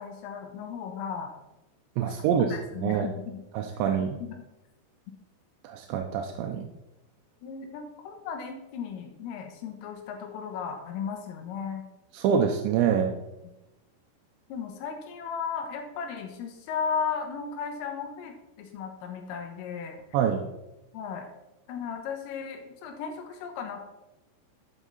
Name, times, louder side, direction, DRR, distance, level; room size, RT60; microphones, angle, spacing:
voice 1, 0.0-1.3 2.0-2.2 2.5-3.4 4.2-4.4 7.4-11.9 14.5-20.0 20.9-21.3 21.7-23.9, left 6 dB, 85° left, 4 dB, 3.9 m, -35 dB
voice 2, 2.0-2.5 2.8-3.1 3.5-4.2 5.6-6.6 12.1-13.1 20.1-20.4, right 7 dB, 80° right, 3 dB, 2.8 m, -25 dB
12.5 x 8.2 x 4.1 m, 0.94 s
omnidirectional pair, 5.6 m